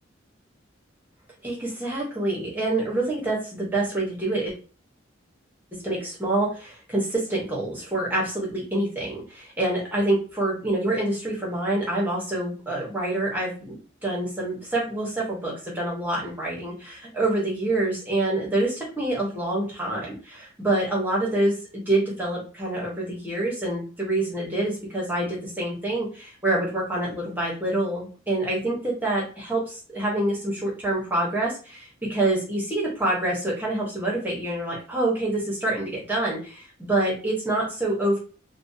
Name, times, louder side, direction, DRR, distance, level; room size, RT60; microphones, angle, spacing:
voice 1, 1.4-4.5 5.8-13.8 14.0-21.5 21.9-38.2, right 1 dB, 10° right, -4 dB, 0.8 m, -26 dB
2.5 x 2.0 x 2.6 m, 0.36 s
head